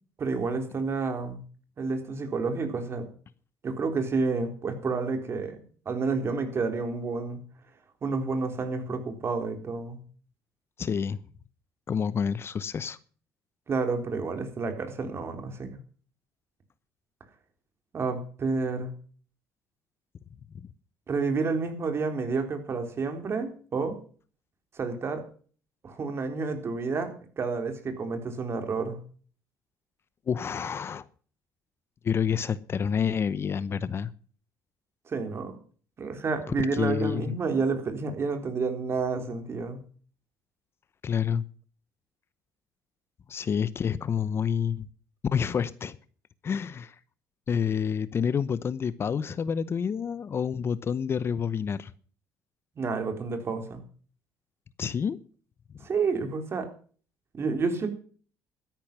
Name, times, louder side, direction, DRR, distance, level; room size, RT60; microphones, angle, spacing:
voice 1, 0.2-1.4 1.8-3.1 3.6-7.4 8.0-10.0 13.7-15.8 17.9-18.9 21.1-24.0 24.8-25.2 25.8-29.0 35.1-35.6 36.0-39.8 52.8-53.8 55.8-56.7 57.3-57.9, right 4 dB, 40° right, 7 dB, 3.7 m, -30 dB
voice 2, 10.8-11.2 11.9-13.0 30.3-31.1 32.0-34.1 36.6-37.3 41.0-41.4 43.3-44.9 45.3-46.0 46.4-46.9 47.5-51.9 54.8-55.2, left 7 dB, 40° left, 17 dB, 0.8 m, -28 dB
13.0 x 10.5 x 6.0 m, 0.43 s
supercardioid pair, 95°, 7 cm